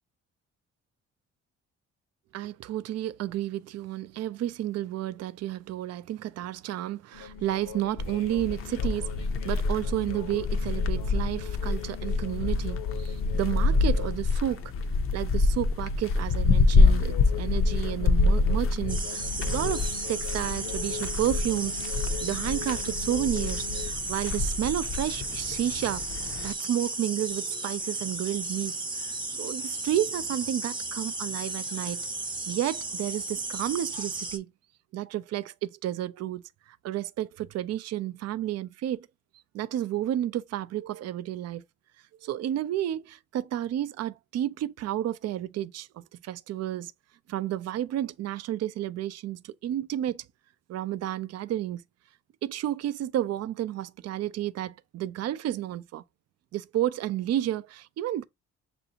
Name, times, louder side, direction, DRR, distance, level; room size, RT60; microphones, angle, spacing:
voice 1, 2.3-14.7 15.1-26.0 26.4-29.1 29.4-32.1 32.5-34.5 34.9-36.4 36.8-39.1 39.5-41.6 42.2-46.9 47.3-50.2 50.7-51.8 52.4-56.0 56.5-58.2, right 12 dB, 55° right, 0.4 m, -31 dB
sound 1, 7.1-14.2 14.5-15.0 16.8-23.9, left 9 dB, 80° left, 0.9 m, -42 dB
sound 2, 8.0-26.5, left 3 dB, 45° left, 0.5 m, -27 dB
sound 3, 18.9-34.4, right 2 dB, 15° right, 0.7 m, -34 dB
6.6 x 2.6 x 2.7 m
cardioid pair, 90°, 30 cm